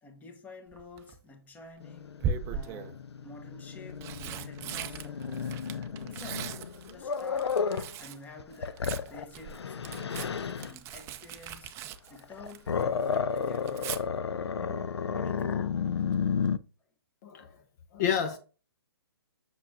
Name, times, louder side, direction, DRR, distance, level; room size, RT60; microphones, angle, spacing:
voice 1, 0.0-5.5 6.0-6.6 6.9-7.5 8.0-10.2 10.6-11.8 12.1-14.1 14.6-15.7, left 3 dB, 10° left, 1.0 m, -50 dB
Tearing, 0.7-1.2 2.2-2.9 3.7-8.2 8.5-12.8 13.1-14.0 15.9-16.1 16.4-16.5, right 7 dB, 20° right, 0.5 m, -39 dB
Growling, 1.8-7.9 8.4-10.7 12.2-16.6, left 6 dB, 85° left, 0.4 m, -32 dB
voice 2, 17.2-17.6 17.9-18.4, left 8 dB, 40° left, 0.8 m, -29 dB
6.2 x 5.8 x 2.6 m
hypercardioid pair, 140°, 13 cm